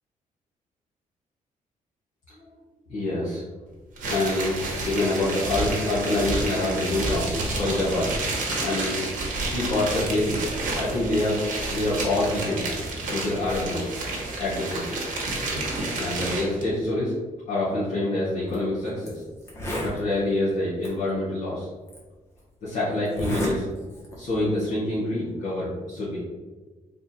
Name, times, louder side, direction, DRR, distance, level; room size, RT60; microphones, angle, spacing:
voice 1, 2.9-3.4 4.1-9.0 9.5-10.4 10.7-11.4 11.7-12.6 13.1-13.8 14.4-15.0 16.0-17.2 17.5-19.2 19.8-21.7 22.6-26.2, left 2 dB, 70° left, -9 dB, 1.4 m, -26 dB
sound 1, 4.0-16.6, right 2 dB, 80° right, 1.0 m, -30 dB
Zipper (clothing), 18.4-18.6 19.1-19.2 19.4-20.0 20.8-20.9 21.9-22.0 23.0-23.5 23.9-24.2, equal, 20° left, 0.9 m, -30 dB
3.6 x 2.3 x 4.1 m, 1.3 s
cardioid pair, 175°, 14 cm